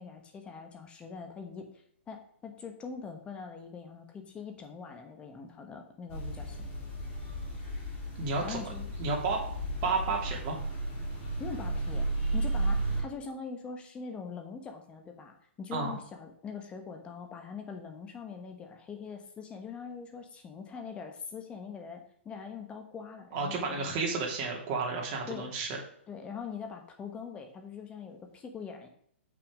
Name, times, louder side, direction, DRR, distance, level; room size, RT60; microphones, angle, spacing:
voice 1, 0.0-1.7 2.1-6.7 8.4-8.9 11.4-12.1 12.3-23.9 25.3-25.5 26.1-28.9, left 5 dB, 15° left, 5 dB, 1.3 m, -43 dB
sound 1, 6.1-13.0, right 2 dB, 35° left, 4.0 m, -34 dB
voice 2, 8.2-8.6 9.0-9.4 9.8-10.6 15.7-16.0 23.3-25.8, right 4 dB, 35° right, -1 dB, 2.9 m, -31 dB
7.6 x 6.1 x 5.0 m, 0.64 s
hypercardioid pair, 145°, 7 cm